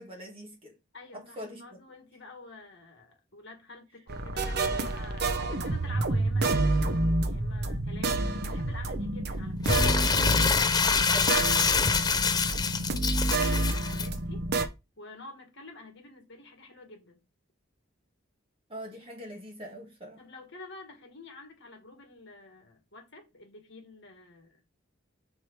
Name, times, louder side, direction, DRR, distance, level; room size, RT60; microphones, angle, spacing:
voice 1, 0.0-0.8 1.1-1.6 10.8-11.3 18.7-20.2, right 1 dB, 25° right, 1.8 m, -43 dB
voice 2, 0.9-9.8 10.3-11.3 11.7-14.5 15.0-17.2 20.2-24.6, left 3 dB, 55° left, 1.7 m, -49 dB
sound 1, 4.1-14.7, right 2 dB, 50° right, 0.7 m, -29 dB
Crumpling crinkling, 9.6-14.1, left 5 dB, 20° left, 0.3 m, -25 dB
4.6 x 4.6 x 4.5 m
head